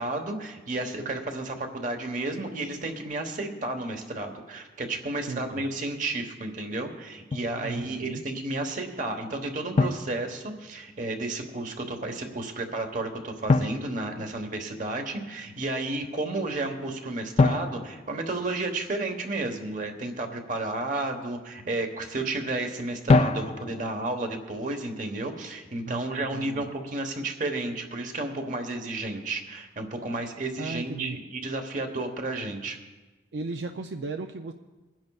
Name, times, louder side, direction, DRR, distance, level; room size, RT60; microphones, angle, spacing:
voice 1, 0.0-32.8, right 2 dB, 45° right, 5 dB, 1.2 m, -32 dB
voice 2, 5.3-5.6 7.6-8.2 25.9-26.6 30.6-31.2 33.3-34.5, right 3 dB, 75° right, 6 dB, 0.5 m, -36 dB
Drum, 7.3-7.6 9.8-10.9 13.5-14.9 17.4-19.1 23.1-24.0, left 3 dB, 35° left, 0.3 m, -26 dB
24.0 x 10.5 x 2.4 m, 1.2 s
head